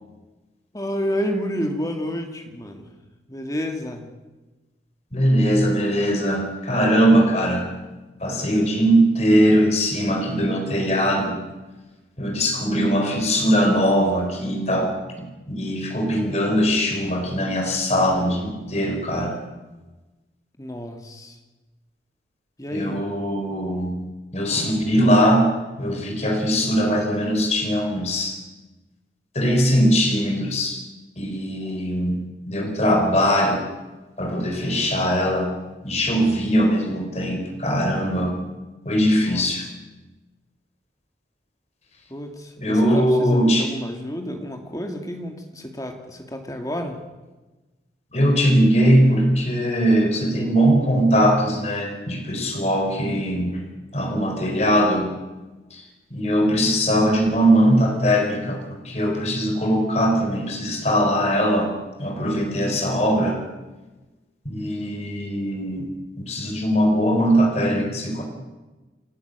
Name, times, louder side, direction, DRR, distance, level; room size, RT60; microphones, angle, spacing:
voice 1, 0.7-2.9 3.3-4.1 20.6-21.4 22.6-23.0 39.1-39.5 42.1-47.0, equal, 20° left, 4 dB, 2.3 m, -30 dB
voice 2, 5.1-7.7 8.2-11.5 12.2-14.9 15.2-19.4 22.7-24.0 24.3-25.5 25.8-28.4 29.3-30.8 31.2-33.7 34.2-35.5 35.8-38.4 38.9-39.6 42.6-43.7 48.1-53.7 53.9-55.1 55.7-55.8 56.1-61.7 62.0-63.4 64.4-65.9 66.2-68.2, equal, 35° left, 3 dB, 4.1 m, -20 dB
28.5 x 12.0 x 8.1 m, 1.2 s
head